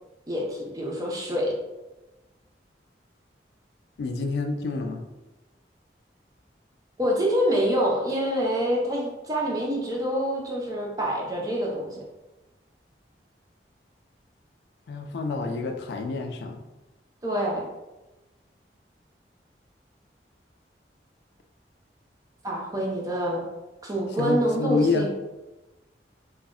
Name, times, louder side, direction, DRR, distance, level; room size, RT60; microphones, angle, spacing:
voice 1, 0.3-1.5 7.0-12.0 17.2-17.6 22.4-23.4 23.8-25.1, equal, 20° right, -2 dB, 0.5 m, -26 dB
voice 2, 4.0-5.0 14.9-16.6 24.2-25.1, left 3 dB, 70° left, 5 dB, 0.3 m, -28 dB
2.2 x 2.0 x 3.5 m, 1.0 s
head